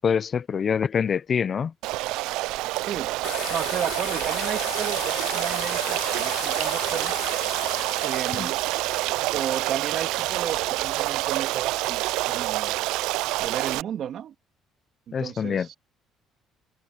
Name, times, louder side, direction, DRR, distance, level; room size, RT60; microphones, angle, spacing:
voice 1, 0.0-1.7 8.3-8.5 15.1-15.7, left 7 dB, 40° left, 0.4 m, -25 dB
Stream, 1.8-13.8, right 19 dB, 90° right, 0.3 m, -27 dB
voice 2, 2.8-3.1 3.5-7.2 8.0-8.6 9.3-12.8 13.4-14.3 15.1-15.8, right 9 dB, 55° right, 2.2 m, -33 dB
sound 1, 3.2-11.3, left 16 dB, 85° left, 5.4 m, -38 dB
cardioid pair, 120°, 0 cm